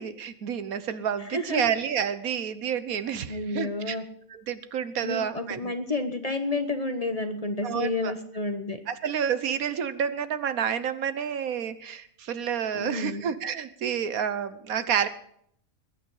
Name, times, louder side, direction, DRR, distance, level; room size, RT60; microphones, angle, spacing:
voice 1, 0.0-4.0 4.3-5.7 7.6-8.1 8.9-15.1, right 8 dB, 75° right, 13 dB, 1.4 m, -29 dB
voice 2, 1.3-1.6 3.3-4.0 5.0-8.8 12.7-13.2, left 2 dB, 30° left, 8 dB, 1.1 m, -30 dB
21.0 x 9.1 x 5.6 m, 0.67 s
omnidirectional pair, 1.5 m